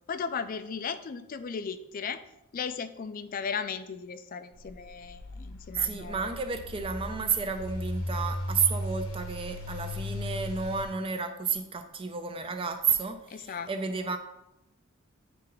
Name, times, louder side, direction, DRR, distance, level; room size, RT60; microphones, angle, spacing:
voice 1, 0.1-2.2 2.5-6.3 13.3-13.7, left 6 dB, 40° left, 12 dB, 0.3 m, -36 dB
sound 1, 4.5-10.9, left 1 dB, 75° left, 0.8 m, -37 dB
voice 2, 5.7-14.2, right 5 dB, 25° right, 7 dB, 0.5 m, -31 dB
8.9 x 3.3 x 3.8 m, 0.89 s
head